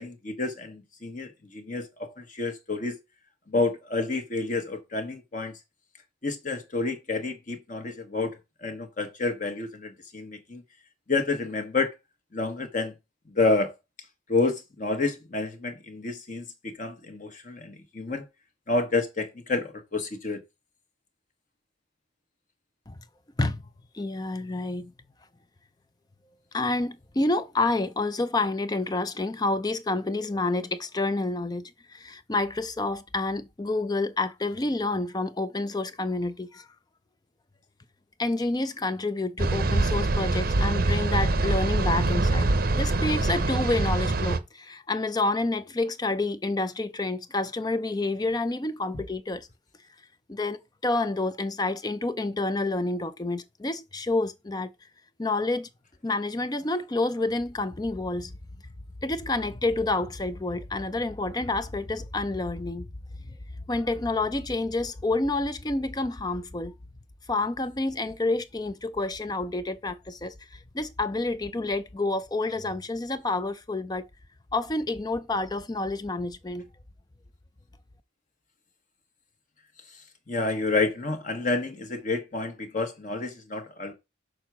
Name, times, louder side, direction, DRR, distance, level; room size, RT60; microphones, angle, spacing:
voice 1, 0.0-3.0 3.5-5.6 6.2-10.6 11.1-11.9 12.3-12.9 13.3-13.8 14.3-18.3 18.7-20.4 80.3-83.9, left 3 dB, 40° left, 1.2 m, -29 dB
voice 2, 23.9-24.9 26.5-36.7 38.2-49.5 50.3-54.7 55.2-55.7 56.0-58.3 59.0-62.9 63.2-63.3 63.7-66.7 67.3-74.1 74.5-76.7, left 2 dB, 20° left, 0.5 m, -29 dB
sound 1, 39.4-44.4, right 2 dB, 45° right, 0.7 m, -24 dB
6.4 x 4.5 x 6.0 m
head